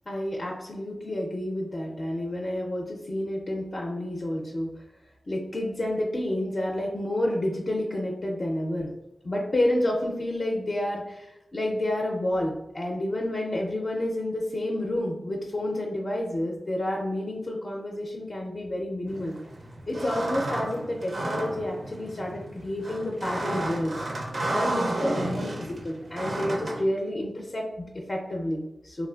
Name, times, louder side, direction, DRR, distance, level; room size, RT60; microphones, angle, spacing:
voice 1, 0.1-4.7 5.3-8.9 9.2-19.4 19.9-23.9 24.5-29.1, left 1 dB, 45° left, -2 dB, 0.4 m, -29 dB
sound 1, 19.1-26.8, right 1 dB, 60° right, 0.4 m, -32 dB
3.3 x 2.4 x 2.3 m, 0.88 s
wide cardioid pair, 100°, 0 cm